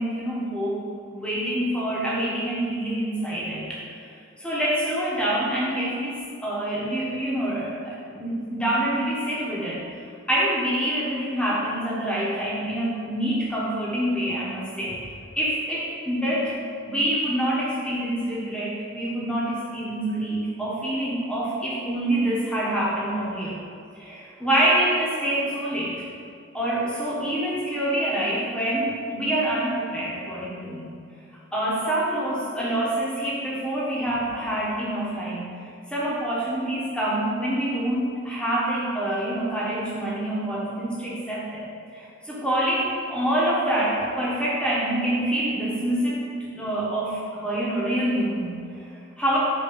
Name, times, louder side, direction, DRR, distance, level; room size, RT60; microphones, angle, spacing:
voice 1, 0.0-3.8 4.4-15.1 15.4-16.6 16.8-23.6 23.9-26.0 26.5-31.0 31.5-41.6 41.9-49.4, right 1 dB, 5° left, -7 dB, 1.1 m, -26 dB
5.3 x 3.8 x 5.1 m, 2.3 s
head